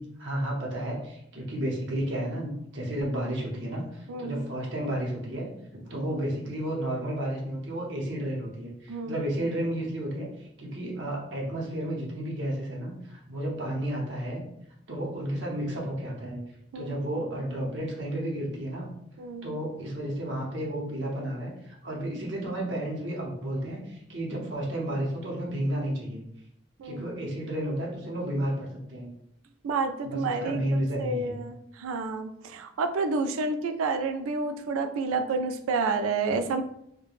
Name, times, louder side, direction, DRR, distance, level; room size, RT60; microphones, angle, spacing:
voice 1, 0.0-14.4 14.9-16.4 16.7-18.9 19.4-26.2 26.8-29.1 30.0-31.3, right 1 dB, 60° right, -3 dB, 0.8 m, -32 dB
voice 2, 4.1-4.4 6.0-6.1 8.9-9.1 16.7-17.0 19.2-19.5 26.8-27.1 29.6-30.7 31.0-36.6, right 4 dB, 90° right, 8 dB, 0.3 m, -29 dB
3.1 x 2.2 x 2.4 m, 0.75 s
head